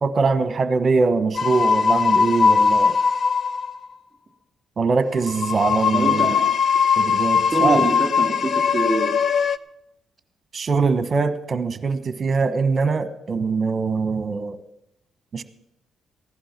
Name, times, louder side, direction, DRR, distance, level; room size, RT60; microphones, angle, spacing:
voice 1, 0.0-2.9 4.8-6.4 7.0-7.8 10.5-14.6 15.3-15.4, right 4 dB, 40° right, 11 dB, 1.2 m, -22 dB
sound 1, 1.3-3.8 5.2-9.6, left 6 dB, 50° left, 0.5 m, -20 dB
voice 2, 5.9-6.6 7.5-9.2, right 2 dB, 25° right, 3 dB, 3.2 m, -25 dB
16.0 x 11.0 x 6.0 m, 0.83 s
cardioid pair, 90°, 0 cm